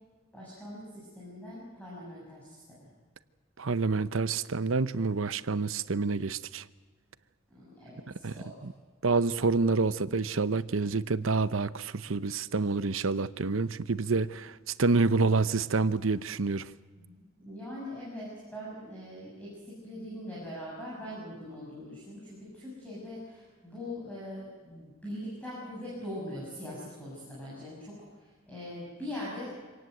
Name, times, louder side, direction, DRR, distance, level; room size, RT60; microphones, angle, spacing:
voice 1, 0.3-2.9 7.5-8.7 16.9-29.5, left 1 dB, 5° left, -7 dB, 6.8 m, -42 dB
voice 2, 3.6-6.6 8.2-8.7 9.0-16.7, right 4 dB, 80° right, 15 dB, 0.8 m, -28 dB
26.5 x 18.5 x 7.8 m, 1.4 s
head